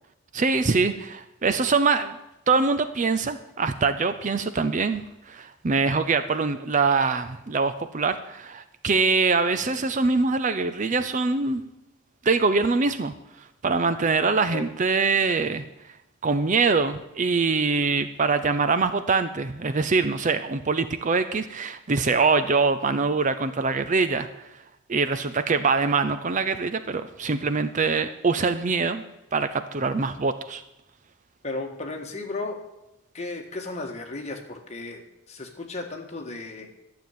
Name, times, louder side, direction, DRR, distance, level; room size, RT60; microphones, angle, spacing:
voice 1, 0.3-2.2 2.5-11.6 12.2-13.1 13.6-15.6 16.2-24.5 24.9-29.0 29.3-30.6, right 4 dB, 35° right, 10 dB, 0.5 m, -23 dB
voice 2, 31.4-32.6 33.1-35.0 35.3-36.7, left 2 dB, 30° left, 2 dB, 1.7 m, -34 dB
12.0 x 7.0 x 9.2 m, 0.92 s
head